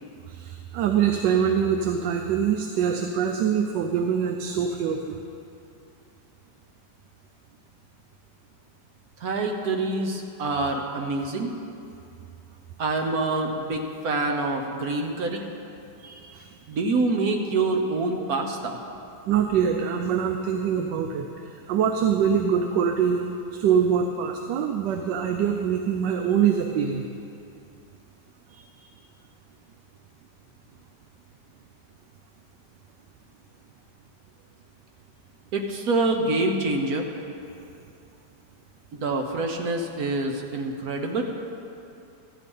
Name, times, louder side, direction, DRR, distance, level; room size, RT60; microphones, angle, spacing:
voice 1, 0.3-5.2 16.0-16.5 19.3-23.2 23.5-27.0 28.5-28.6, right 7 dB, 90° right, 4 dB, 1.3 m, -24 dB
voice 2, 9.2-11.5 12.8-15.4 16.7-18.8 35.5-37.1 38.9-41.2, right 2 dB, 65° right, 3 dB, 1.3 m, -26 dB
13.0 x 8.3 x 5.4 m, 2.7 s
omnidirectional pair, 1.8 m